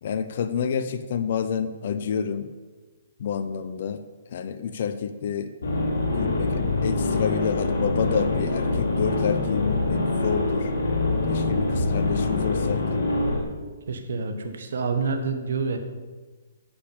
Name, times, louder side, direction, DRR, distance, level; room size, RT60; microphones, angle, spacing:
voice 1, 0.0-2.5 3.2-5.5 6.0-10.7 11.3-13.0, left 7 dB, 55° left, 11 dB, 0.7 m, -28 dB
sound 1, 5.6-13.4, left 2 dB, 80° left, 2.2 m, -25 dB
voice 2, 13.9-15.8, right 4 dB, 70° right, 7 dB, 1.2 m, -27 dB
9.8 x 5.3 x 7.0 m, 1.3 s
hypercardioid pair, 140°, 0 cm